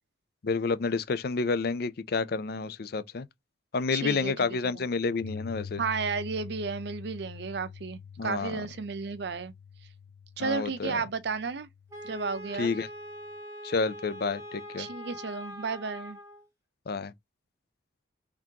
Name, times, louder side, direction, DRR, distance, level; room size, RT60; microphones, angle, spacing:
voice 1, 0.4-3.3 3.7-5.8 8.2-8.6 10.4-11.0 12.6-12.9 13.6-14.9 16.9-17.1, left 4 dB, 55° left, 0.5 m, -29 dB
voice 2, 3.9-4.3 4.7-4.8 5.8-9.5 10.4-11.7 12.0-12.7 14.8-16.2, right 5 dB, 60° right, 0.5 m, -33 dB
Piano, 5.2-13.3, left 7 dB, 75° left, 1.0 m, -46 dB
Wind instrument woodwind instrument, 11.9-16.5, equal, 15° right, 1.1 m, -43 dB
3.6 x 3.6 x 2.8 m
head